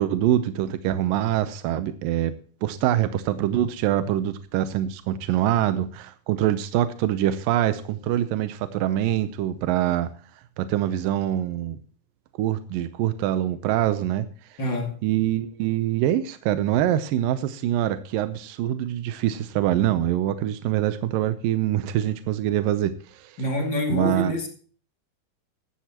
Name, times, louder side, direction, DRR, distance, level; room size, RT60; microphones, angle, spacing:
voice 1, 0.0-2.3 2.6-10.1 10.6-11.8 12.4-14.3 15.0-23.4 23.9-24.3, right 12 dB, 85° right, 2.5 m, -24 dB
voice 2, 14.6-15.0 23.4-24.5, left 1 dB, 35° left, 2.8 m, -26 dB
15.5 x 12.5 x 2.9 m
omnidirectional pair, 3.9 m